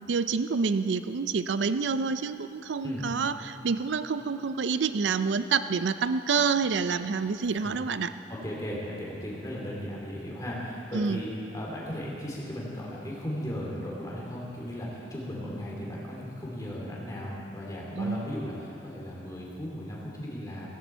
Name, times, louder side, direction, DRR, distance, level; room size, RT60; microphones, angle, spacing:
voice 1, 0.0-8.1 10.9-11.2 17.9-18.3, right 5 dB, 75° right, 12 dB, 0.4 m, -28 dB
voice 2, 8.3-20.7, equal, 20° left, -4 dB, 3.1 m, -36 dB
16.5 x 15.5 x 4.5 m, 2.8 s
head